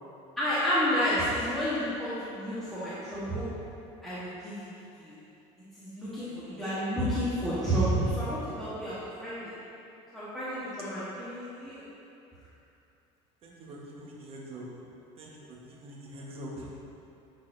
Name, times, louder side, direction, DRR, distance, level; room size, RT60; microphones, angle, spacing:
voice 1, 0.4-3.4 4.0-4.7 5.0-5.2 5.8-9.4 10.1-11.8, equal, ahead, -13 dB, 1.3 m, -30 dB
voice 2, 6.1-6.6 13.4-14.6 15.2-16.7, right 1 dB, 40° right, -3 dB, 1.2 m, -45 dB
10.5 x 4.1 x 2.6 m, 2.8 s
cardioid pair, 125°, 14 cm